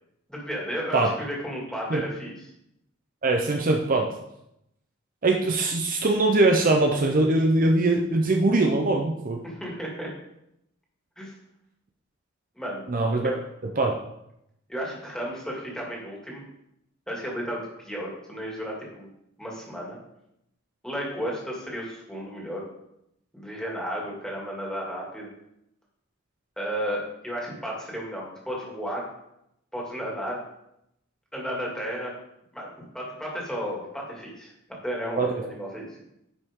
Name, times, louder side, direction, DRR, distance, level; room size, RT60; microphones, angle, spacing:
voice 1, 0.3-2.5 9.4-10.1 11.2-11.3 12.5-12.8 13.2-13.4 14.7-16.4 17.1-19.1 19.4-20.0 20.8-22.7 23.3-25.3 26.6-29.0 29.7-30.4 31.3-32.1 32.5-36.0, equal, 5° left, -3 dB, 2.4 m, -33 dB
voice 2, 3.2-4.1 5.2-9.4 12.9-13.3 13.6-13.9 35.2-35.4, right 2 dB, 40° right, 3 dB, 0.6 m, -22 dB
11.0 x 5.5 x 3.7 m, 0.81 s
head